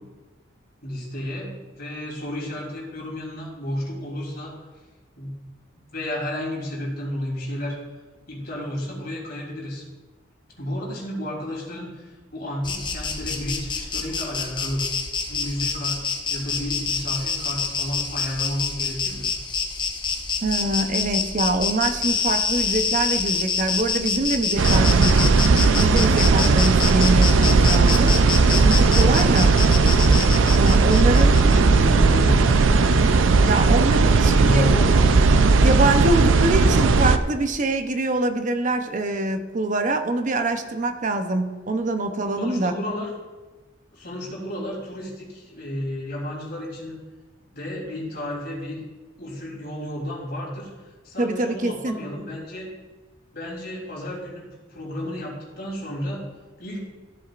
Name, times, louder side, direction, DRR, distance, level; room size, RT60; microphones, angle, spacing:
voice 1, 0.8-4.5 5.2-5.3 5.9-7.8 8.3-9.8 10.6-14.8 15.3-19.3 30.7-33.4 34.0-35.2 42.4-43.1 43.9-47.0 47.5-48.8 49.2-52.7 53.3-56.3 56.6-56.8, left 1 dB, 50° left, -4 dB, 3.3 m, -32 dB
Insect, 12.6-31.8, left 5 dB, 25° left, 0.8 m, -27 dB
voice 2, 20.4-25.3 25.8-28.1 28.5-29.6 30.5-31.3 33.4-34.6 35.6-42.7 51.2-51.9, right 2 dB, 40° right, 7 dB, 0.7 m, -24 dB
sound 1, 24.6-37.2, right 4 dB, 80° right, 0.5 m, -17 dB
14.5 x 7.7 x 2.5 m, 1.3 s
head